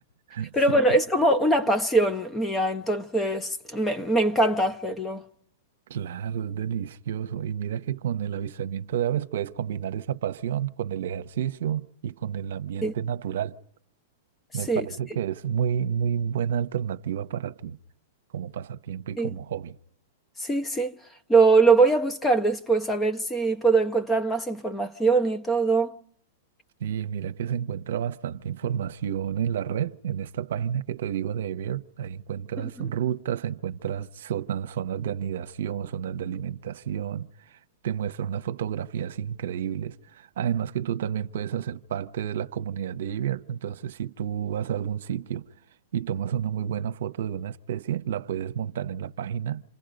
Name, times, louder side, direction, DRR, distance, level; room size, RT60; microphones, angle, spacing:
voice 1, 0.5-5.2 12.8-12.9 14.7-14.8 19.2-19.3 20.4-21.0 21.3-25.9, right 3 dB, 10° left, 0.9 m, -22 dB
voice 2, 5.9-13.6 14.5-17.8 18.3-19.8 26.8-37.6 37.8-45.5 45.9-49.6, right 9 dB, 75° right, 0.9 m, -30 dB
28.5 x 27.5 x 5.3 m
hypercardioid pair, 140°, 0 cm